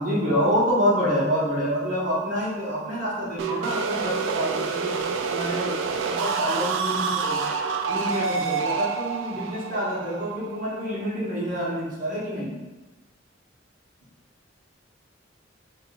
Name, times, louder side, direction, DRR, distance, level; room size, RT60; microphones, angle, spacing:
voice 1, 0.0-5.0 5.3-7.4 7.9-12.5, equal, 45° right, -6 dB, 1.2 m, -27 dB
sound 1, 3.4-11.1, right 5 dB, 90° right, 0.4 m, -28 dB
6.5 x 2.4 x 2.5 m, 1.2 s
head